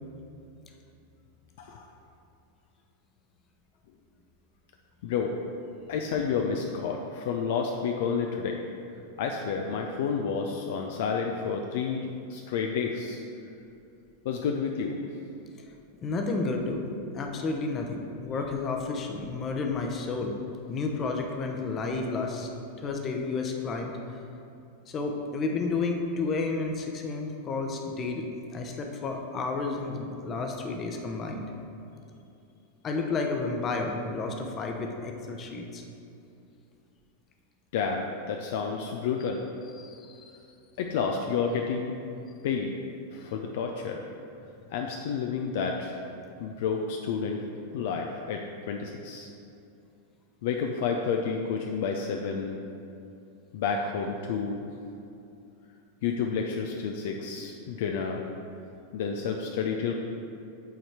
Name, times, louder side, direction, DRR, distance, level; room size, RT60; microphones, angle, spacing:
voice 1, 5.0-5.4 5.9-8.6 9.2-13.2 14.2-15.1 37.7-39.4 40.8-42.0 42.4-42.7 43.1-44.1 44.7-46.0 46.4-47.4 47.7-49.3 50.4-52.6 53.5-54.7 56.0-58.2 58.9-59.9, left 6 dB, 55° left, 2 dB, 0.4 m, -30 dB
voice 2, 16.0-20.3 20.7-22.5 22.8-23.9 24.9-31.5 32.8-35.8 39.8-40.3, left 3 dB, 25° left, 2 dB, 0.8 m, -31 dB
8.0 x 4.3 x 4.7 m, 2.7 s
figure-of-eight pair, 90°, 0 cm